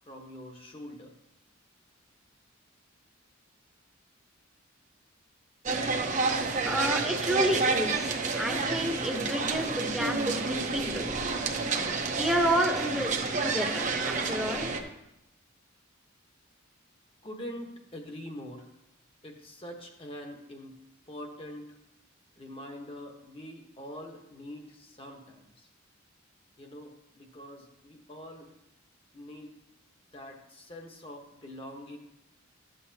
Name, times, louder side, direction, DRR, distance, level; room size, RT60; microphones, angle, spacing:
voice 1, 0.1-1.1 17.2-18.7 19.2-20.8 21.1-21.8 22.4-25.7 26.6-28.5 29.1-29.5 30.1-32.0, left 1 dB, 30° left, 3 dB, 1.1 m, -44 dB
sound 1, 5.7-14.8, right 4 dB, 40° right, 0.8 m, -29 dB
voice 2, 6.6-11.1 12.1-13.1 13.4-14.7, equal, ahead, 1 dB, 1.0 m, -30 dB
12.0 x 7.8 x 2.8 m, 0.84 s
head